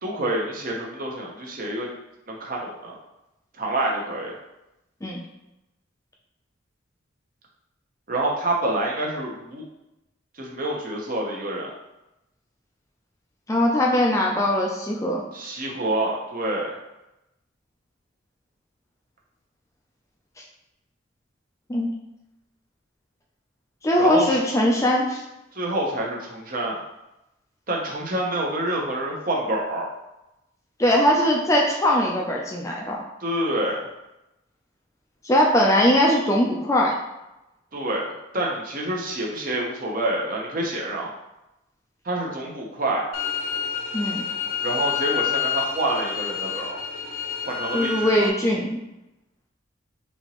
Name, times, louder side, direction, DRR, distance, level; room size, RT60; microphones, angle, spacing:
voice 1, 0.0-1.9 2.3-3.0 3.6-4.3 8.1-9.6 10.3-11.7 15.3-16.7 24.0-24.4 25.5-26.8 27.7-29.9 33.2-33.9 37.7-41.1 42.0-43.0 44.6-46.8 47.5-48.3, right 1 dB, 45° right, -2 dB, 0.8 m, -27 dB
voice 2, 13.5-15.2 21.7-21.9 23.8-25.2 30.8-33.0 35.2-36.9 43.9-44.2 47.7-48.7, left 1 dB, 15° left, -2 dB, 0.4 m, -20 dB
sound 1, 43.1-48.3, left 7 dB, 85° left, 0.5 m, -28 dB
4.2 x 2.9 x 3.0 m, 0.93 s
head